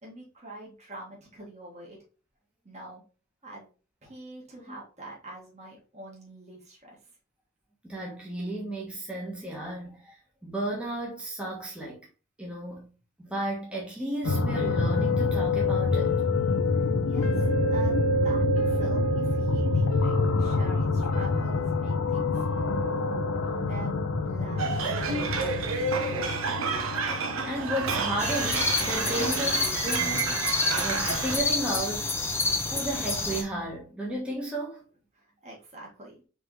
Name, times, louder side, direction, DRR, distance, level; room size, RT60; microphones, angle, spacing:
voice 1, 0.0-2.0 2.7-3.0 3.4-3.7 4.0-7.0 16.7-22.4 23.7-25.6 35.1-36.2, right 2 dB, 30° right, 1.7 m, -45 dB
voice 2, 7.8-12.0 12.4-12.9 13.2-16.3 27.4-32.1 32.6-34.8, right 1 dB, 5° right, 1.2 m, -34 dB
sound 1, 14.2-31.5 33.2-33.3 33.6-33.7, left 3 dB, 75° left, 0.7 m, -27 dB
sound 2, 24.6-31.4, right 4 dB, 65° right, 0.9 m, -30 dB
sound 3, 28.2-33.4, left 3 dB, 10° left, 0.7 m, -28 dB
4.7 x 3.6 x 3.1 m
head